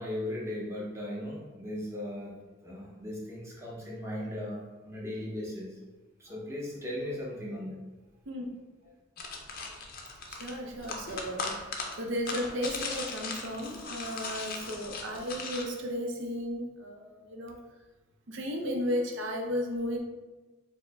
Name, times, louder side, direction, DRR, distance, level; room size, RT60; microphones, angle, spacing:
voice 1, 0.0-2.3 2.6-5.8 6.2-7.8, left 1 dB, 15° right, -4 dB, 0.8 m, -37 dB
sound 1, 9.2-15.6, left 4 dB, 45° left, 0.5 m, -38 dB
voice 2, 10.3-11.7 11.9-17.6 18.3-20.0, equal, 65° right, 2 dB, 0.6 m, -34 dB
4.6 x 2.1 x 3.3 m, 1.2 s
head